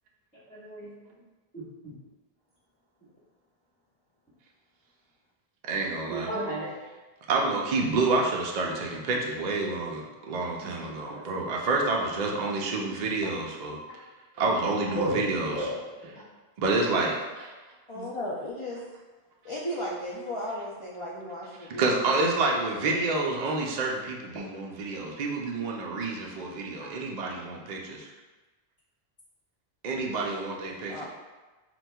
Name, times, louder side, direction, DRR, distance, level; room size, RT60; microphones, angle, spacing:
voice 1, 0.5-0.9 1.5-1.9 6.1-6.7 8.6-8.7 9.1-9.2 10.8-11.2 14.9-15.2 15.5-16.1 17.9-18.1, right 1 dB, 10° left, -9 dB, 1.0 m, -34 dB
voice 2, 5.7-6.3 7.3-13.7 14.4-15.7 16.6-17.5 21.6-28.1 29.8-31.1, right 3 dB, 55° right, -1 dB, 0.5 m, -28 dB
voice 3, 17.9-18.8 19.4-22.1 22.4-23.2 30.9-31.1, left 1 dB, 50° left, -6 dB, 0.3 m, -36 dB
5.8 x 2.2 x 2.2 m, 1.2 s
omnidirectional pair, 1.1 m